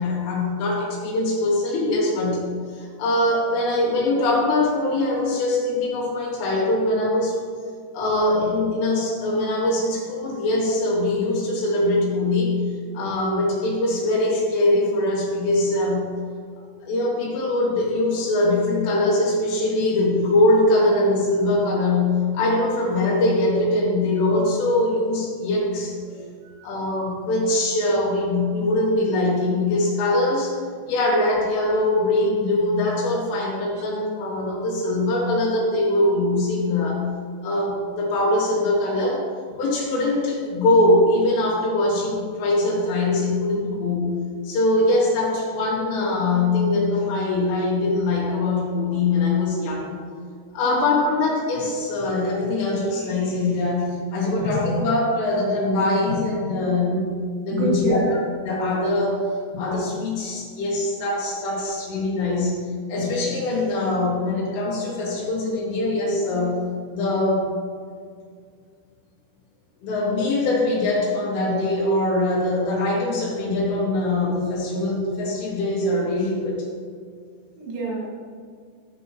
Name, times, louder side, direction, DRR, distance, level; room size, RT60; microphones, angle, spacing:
voice 1, 0.0-2.4 2.7-7.4 7.9-12.6 12.9-16.1 16.8-25.9 26.6-30.6 30.9-37.0 37.4-39.2 39.6-50.0 50.5-57.1 57.5-59.2 59.5-62.6 62.9-66.6 66.9-67.5 69.8-76.7, left 2 dB, 80° left, -4 dB, 5.2 m, -22 dB
voice 2, 26.1-26.7 50.6-50.8 57.5-58.0 77.6-78.1, right 2 dB, 85° right, -4 dB, 4.8 m, -29 dB
15.0 x 8.0 x 3.2 m, 2.1 s
omnidirectional pair, 5.7 m